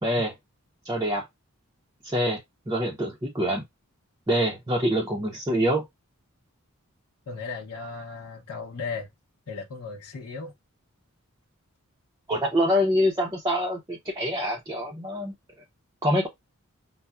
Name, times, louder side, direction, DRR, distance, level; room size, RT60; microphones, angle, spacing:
voice 1, 0.0-0.3 0.8-1.2 2.0-2.4 2.7-3.6 4.3-5.8 12.3-15.3 16.0-16.3, equal, 15° right, 0.5 m, -25 dB
voice 2, 7.3-9.1 9.5-10.5, left 4 dB, 80° left, 0.8 m, -36 dB
5.4 x 2.0 x 2.3 m
head